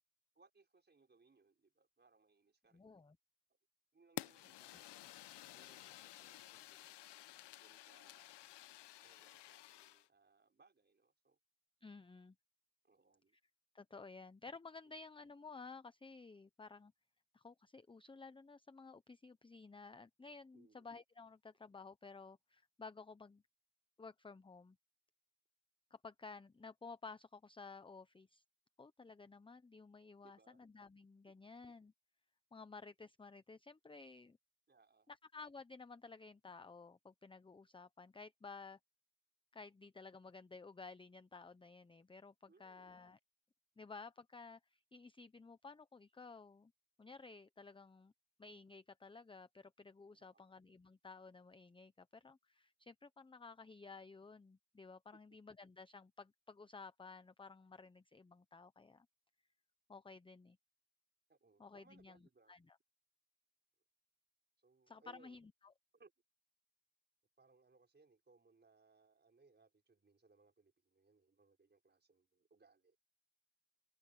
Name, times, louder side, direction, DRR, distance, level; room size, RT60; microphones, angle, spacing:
voice 1, 0.3-2.8 3.9-5.0 5.5-7.0 7.5-8.4 9.0-11.4 12.8-13.4 20.5-20.9 30.2-30.6 34.7-35.1 42.5-43.0 50.1-50.5 55.1-55.2 61.3-62.5 64.6-65.4 65.9-66.1 67.4-73.0, right 4 dB, 20° right, 5.4 m, -70 dB
voice 2, 2.7-3.2 11.8-12.4 13.7-16.9 17.3-23.4 24.0-24.8 25.9-28.4 28.8-31.9 32.5-34.4 35.1-38.8 39.5-43.2 43.8-46.7 47.0-48.1 48.4-59.1 59.9-60.6 61.6-62.2 62.5-62.8 64.9-65.7, left 4 dB, 10° left, 0.8 m, -55 dB
Fire, 4.2-10.1, left 15 dB, 55° left, 1.0 m, -53 dB
cardioid pair, 105°, 50 cm